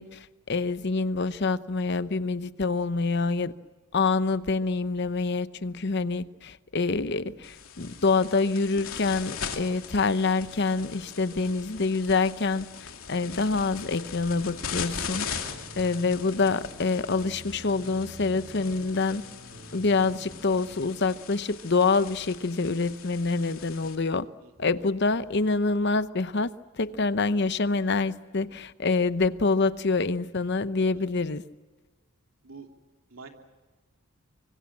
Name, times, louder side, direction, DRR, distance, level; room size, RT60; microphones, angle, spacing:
voice 1, 0.0-3.5 3.9-19.2 19.7-24.3 24.6-31.4, left 3 dB, 55° left, 14 dB, 0.8 m, -26 dB
sound 1, 7.4-23.9, left 7 dB, 80° left, 2.6 m, -40 dB
voice 2, 11.3-11.6 15.4-15.8 23.0-23.4 24.4-24.7 30.9-31.3 32.4-32.7 33.1-33.3, right 4 dB, 75° right, 3 dB, 3.0 m, -50 dB
sound 2, 14.1-20.7, equal, 55° right, 3.7 m, -48 dB
25.0 x 24.5 x 7.5 m, 1.3 s
head